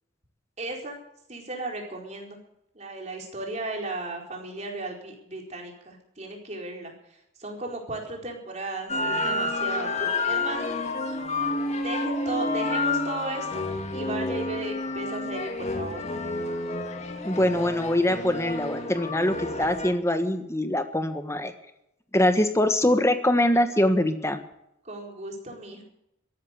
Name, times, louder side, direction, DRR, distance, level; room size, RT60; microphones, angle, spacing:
voice 1, 0.6-1.0 1.3-2.4 2.7-10.6 11.7-13.6 13.9-16.1 24.8-25.8, right 2 dB, 35° right, 1 dB, 4.4 m, -35 dB
sound 1, 8.9-19.9, left 2 dB, 35° left, 2.1 m, -29 dB
voice 2, 17.2-21.5 22.1-24.4, left 1 dB, 15° left, 8 dB, 1.5 m, -23 dB
14.5 x 11.5 x 8.0 m, 0.80 s
head